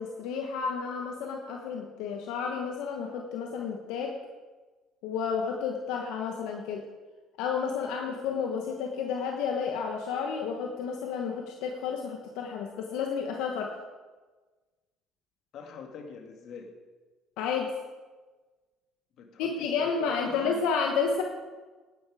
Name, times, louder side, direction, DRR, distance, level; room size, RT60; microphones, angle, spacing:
voice 1, 0.0-4.1 5.0-6.8 7.4-13.7 17.4-17.7 19.4-21.2, left 6 dB, 85° left, 2 dB, 1.2 m, -31 dB
voice 2, 15.5-16.7 19.2-20.6, left 5 dB, 60° left, 4 dB, 2.1 m, -44 dB
11.0 x 10.5 x 4.9 m, 1.3 s
cardioid pair, 100°, 0 cm